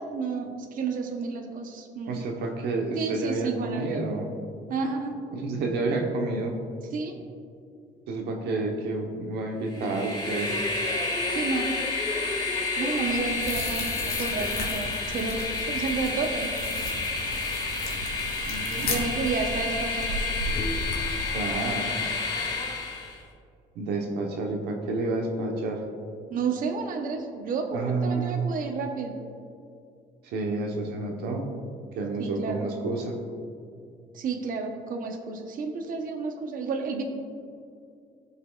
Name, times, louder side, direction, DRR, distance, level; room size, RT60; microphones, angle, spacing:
voice 1, 0.0-2.1 3.0-4.0 4.7-5.2 6.9-7.2 11.3-11.7 12.8-15.4 15.7-16.7 18.8-20.1 26.3-29.1 32.2-32.7 34.1-37.0, right 4 dB, 55° right, 3 dB, 1.0 m, -31 dB
voice 2, 2.1-4.3 5.3-6.6 8.1-10.5 18.5-18.9 21.3-22.0 23.7-25.8 27.7-28.5 30.2-31.5 31.9-33.2, right 3 dB, 80° right, 1 dB, 1.0 m, -29 dB
Train, 9.7-23.2, left 3 dB, 25° left, 1.8 m, -30 dB
sound 1, 13.0-21.3, left 2 dB, 60° left, 1.5 m, -35 dB
15.5 x 5.5 x 2.4 m, 2.4 s
cardioid pair, 110°, 17 cm